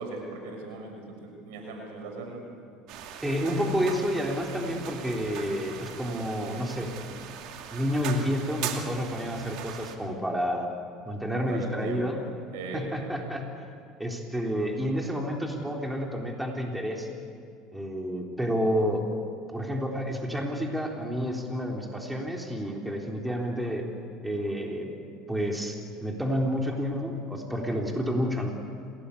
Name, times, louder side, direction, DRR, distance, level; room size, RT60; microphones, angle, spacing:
voice 1, 0.0-2.5 2.9-3.1 11.3-12.2 12.5-13.0, right 2 dB, 85° right, 3 dB, 6.1 m, -39 dB
sound 1, 2.9-10.0, right 9 dB, 65° right, 2.6 m, -40 dB
voice 2, 3.2-7.2 7.7-10.7 11.1-12.2 12.7-13.5 14.0-17.1 17.7-19.1 19.5-23.9 24.2-24.9 25.3-28.5, equal, 5° right, 1 dB, 3.7 m, -30 dB
27.5 x 18.5 x 8.6 m, 2.4 s
supercardioid pair, 100°, 0 cm